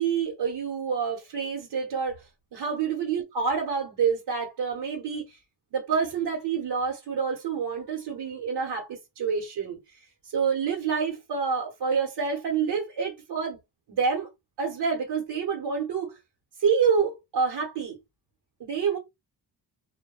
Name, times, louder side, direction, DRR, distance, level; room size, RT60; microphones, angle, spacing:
voice 1, 0.0-2.2 2.5-5.4 5.7-10.0 10.3-13.6 13.9-14.3 14.6-16.2 16.6-18.0 18.6-19.0, right 6 dB, 80° right, 1.0 m, -27 dB
2.2 x 2.2 x 2.9 m
cardioid pair, 80°, 40 cm